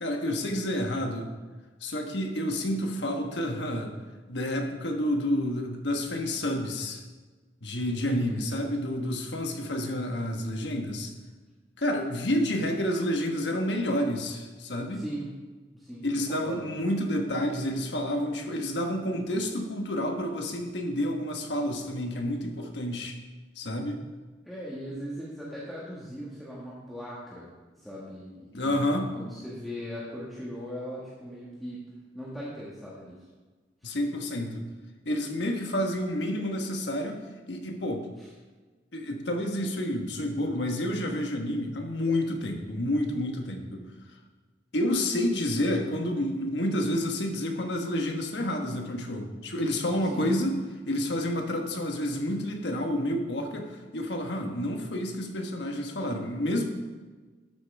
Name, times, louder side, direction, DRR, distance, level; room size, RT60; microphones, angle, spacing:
voice 1, 0.0-1.3 1.8-3.9 4.3-7.0 7.6-11.1 11.8-15.0 16.0-23.2 23.5-24.0 28.5-29.1 33.8-34.7 35.0-37.2 37.5-38.1 38.9-43.8 44.7-50.6 50.9-56.6, left 1 dB, 70° left, 3 dB, 1.3 m, -29 dB
voice 2, 8.0-8.3 14.9-15.4 15.7-16.0 16.3-16.7 24.4-27.5 27.8-31.8 32.1-33.2 33.8-34.0 38.2-38.3 43.4-43.7 50.1-50.3, equal, ahead, -8 dB, 1.6 m, -39 dB
12.0 x 8.3 x 3.4 m, 1.3 s
head